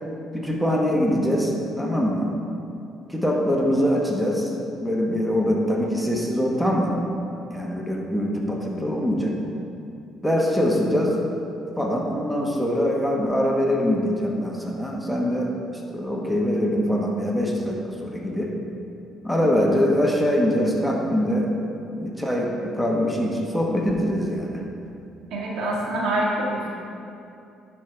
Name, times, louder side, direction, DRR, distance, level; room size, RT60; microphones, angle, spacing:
voice 1, 0.3-2.3 3.1-4.5 4.8-6.9 7.5-9.3 10.2-11.2 11.8-15.5 15.9-18.5 19.2-21.5 21.9-24.6, equal, ahead, -2 dB, 1.4 m, -23 dB
voice 2, 25.3-26.7, right 1 dB, 65° right, -4 dB, 1.7 m, -25 dB
11.5 x 5.4 x 3.4 m, 2.7 s
supercardioid pair, 60°, 0 cm